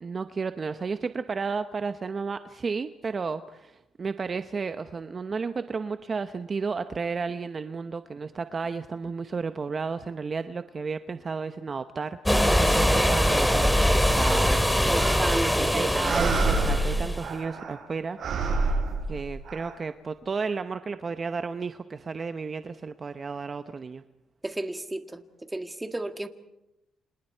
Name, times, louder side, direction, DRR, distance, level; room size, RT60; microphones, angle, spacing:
voice 1, 0.0-15.0 15.6-18.8 19.1-24.0, right 5 dB, 40° right, 10 dB, 0.8 m, -33 dB
sound 1, 12.2-17.3, equal, 5° left, 2.3 m, -23 dB
voice 2, 14.9-16.2 24.4-26.3, right 2 dB, 10° right, 7 dB, 1.8 m, -33 dB
sound 2, 15.0-15.6 16.0-17.8 18.2-19.7, right 3 dB, 55° right, 6.4 m, -28 dB
30.0 x 27.0 x 4.6 m, 0.90 s
cardioid pair, 90°, 0 cm